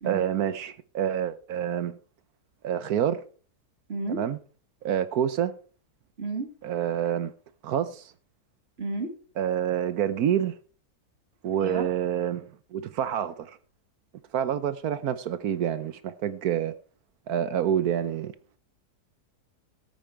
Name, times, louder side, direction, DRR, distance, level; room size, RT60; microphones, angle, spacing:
voice 1, 0.0-2.0 2.6-3.2 4.1-4.4 4.8-5.6 6.6-7.3 7.6-8.1 9.4-10.6 11.4-13.6 14.3-16.7 17.3-18.3, right 9 dB, 70° right, 1.2 m, -27 dB
voice 2, 3.9-4.2 6.2-6.5 8.8-9.1 11.6-11.9, right 3 dB, 40° right, 2.4 m, -31 dB
13.0 x 8.9 x 4.6 m
omnidirectional pair, 1.7 m